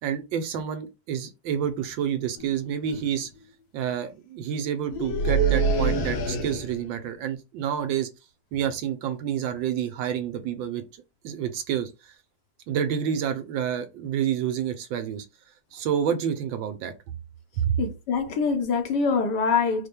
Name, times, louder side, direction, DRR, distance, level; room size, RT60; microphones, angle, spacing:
voice 1, 0.0-3.3 3.7-8.1 8.5-10.8 11.2-11.9 12.7-15.3 15.7-16.9 17.6-17.8, right 9 dB, 80° right, 1.4 m, -28 dB
sound 1, 2.4-2.6 2.9-3.2 4.9-6.9, right 4 dB, 80° left, 1.6 m, -25 dB
voice 2, 17.8-19.9, left 5 dB, 65° left, 1.2 m, -24 dB
4.2 x 2.2 x 3.3 m
omnidirectional pair, 2.1 m